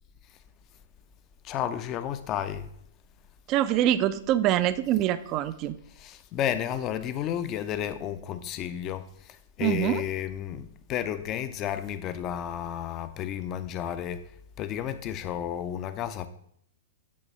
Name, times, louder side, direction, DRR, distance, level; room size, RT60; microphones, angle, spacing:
voice 1, 1.4-2.7 6.0-14.3 14.6-16.3, left 10 dB, 35° left, 0.5 m, -32 dB
voice 2, 3.5-5.8 9.6-10.0, right 12 dB, 35° right, 0.4 m, -24 dB
8.6 x 3.1 x 5.4 m
figure-of-eight pair, 105°, 0 cm